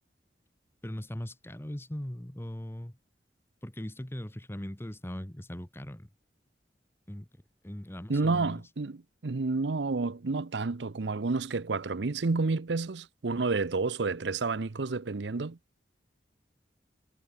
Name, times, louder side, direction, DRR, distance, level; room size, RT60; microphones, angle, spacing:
voice 1, 0.8-2.9 3.6-6.1 7.1-7.3 7.6-8.6, equal, 15° left, 1.2 m, -39 dB
voice 2, 8.1-15.6, right 3 dB, 80° right, 0.7 m, -30 dB
head